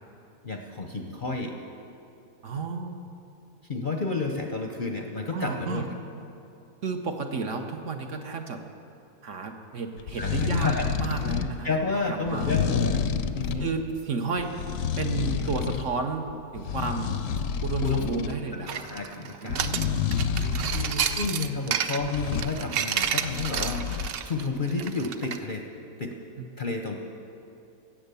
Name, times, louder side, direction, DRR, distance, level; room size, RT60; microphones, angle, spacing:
voice 1, 0.4-1.5 3.7-5.9 10.2-10.9 11.3-11.4 11.6-13.0 13.3-13.7 17.8-18.3 18.7-19.6 20.6-25.7 26.0-26.1 26.6-27.0, left 3 dB, 45° left, 2 dB, 0.7 m, -31 dB
voice 2, 2.4-3.0 5.3-5.9 6.8-8.6 9.2-10.7 11.0-11.7 12.1-12.5 13.6-14.5 15.0-16.3 16.5-17.1 17.6-18.8 19.4-20.0 20.3-21.1 26.4-26.5, right 4 dB, 55° right, 4 dB, 1.2 m, -32 dB
sound 1, 10.0-11.6 12.3-13.7 14.4-15.9 16.3-18.4 19.5-21.3 22.0-22.5 23.0-24.1, left 7 dB, 65° left, 0.9 m, -29 dB
sound 2, 18.7-25.4, right 8 dB, 80° right, 0.5 m, -30 dB
16.5 x 8.1 x 6.9 m, 2.7 s
omnidirectional pair, 1.6 m